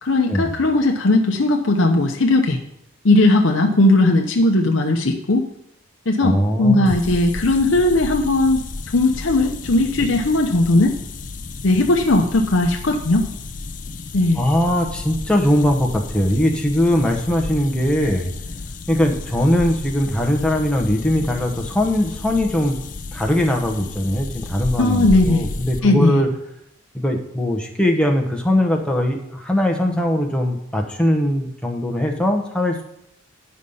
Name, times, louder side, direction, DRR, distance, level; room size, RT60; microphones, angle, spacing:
voice 1, 0.0-2.6 3.0-5.4 6.1-8.6 8.9-11.0 11.6-13.3 14.1-14.5 24.8-25.5 25.8-26.2, left 2 dB, 70° left, 2 dB, 0.8 m, -17 dB
voice 2, 6.2-6.9 14.4-18.3 18.9-22.8 23.1-26.3 26.9-32.8, left 1 dB, 5° left, 1 dB, 1.0 m, -20 dB
sound 1, 6.9-25.8, left 3 dB, 40° left, 0.5 m, -33 dB
10.0 x 5.2 x 5.5 m, 0.77 s
head